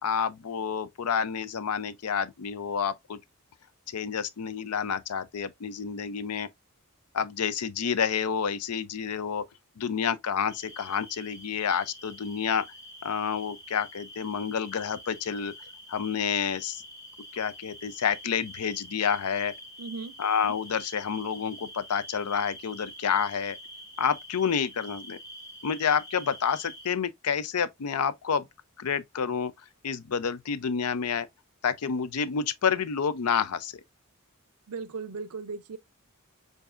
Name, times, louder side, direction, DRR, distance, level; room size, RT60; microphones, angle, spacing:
voice 1, 0.0-3.2 3.9-6.5 7.1-9.4 9.8-12.6 13.0-15.5 15.9-16.8 17.3-19.5 20.2-23.6 24.0-25.2 25.6-28.4 28.8-29.5 29.8-31.3 31.6-33.8, left 7 dB, 85° left, 0.5 m, -29 dB
sound 1, 10.5-26.9, equal, 15° left, 1.3 m, -46 dB
voice 2, 19.8-20.1 34.7-35.8, right 4 dB, 80° right, 0.5 m, -37 dB
6.9 x 2.7 x 2.5 m
head